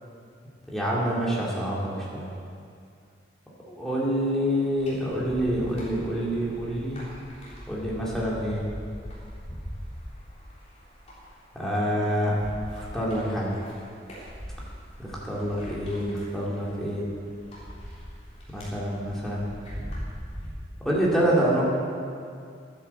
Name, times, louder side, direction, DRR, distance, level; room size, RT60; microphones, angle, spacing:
voice 1, 0.7-2.3 3.7-7.0 7.7-8.6 11.5-12.4 12.8-13.5 15.0-17.0 18.5-19.4 20.8-21.6, equal, ahead, -6 dB, 2.7 m, -27 dB
sound 1, 4.8-20.5, equal, 30° left, 3.5 m, -41 dB
12.0 x 10.5 x 7.1 m, 2.3 s
head